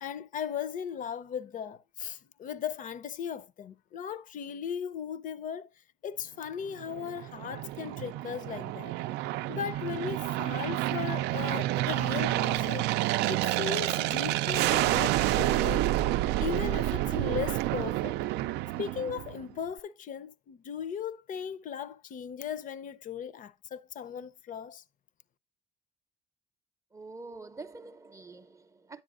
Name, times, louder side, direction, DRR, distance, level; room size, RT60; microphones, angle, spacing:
voice 1, 0.0-5.7 6.0-9.0 9.5-15.9 16.4-18.2 18.8-24.8, left 8 dB, 50° left, 0.6 m, -37 dB
Aircraft, 6.8-19.5, right 16 dB, 85° right, 0.4 m, -29 dB
voice 2, 26.9-29.0, right 3 dB, 20° right, 0.5 m, -46 dB
10.0 x 8.5 x 2.5 m
cardioid pair, 110°, 17 cm